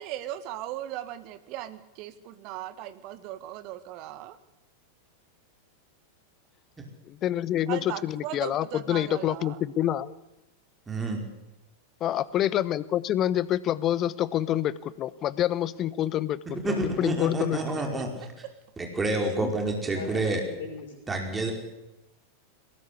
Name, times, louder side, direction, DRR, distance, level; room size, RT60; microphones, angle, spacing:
voice 1, 0.0-4.4 7.7-9.6 17.8-18.1 18.4-18.5 19.3-19.4, right 13 dB, 40° right, 12 dB, 1.9 m, -38 dB
voice 2, 7.2-10.1 12.0-16.4 16.6-17.6 17.9-18.0, left 12 dB, 30° left, 18 dB, 1.0 m, -27 dB
voice 3, 10.9-11.2 16.6-18.3 18.8-20.4 21.1-21.5, right 2 dB, 15° right, 3 dB, 5.0 m, -28 dB
voice 4, 19.8-20.9, left 5 dB, 55° left, -3 dB, 5.9 m, -41 dB
22.5 x 19.5 x 8.5 m, 0.95 s
figure-of-eight pair, 90°, 0 cm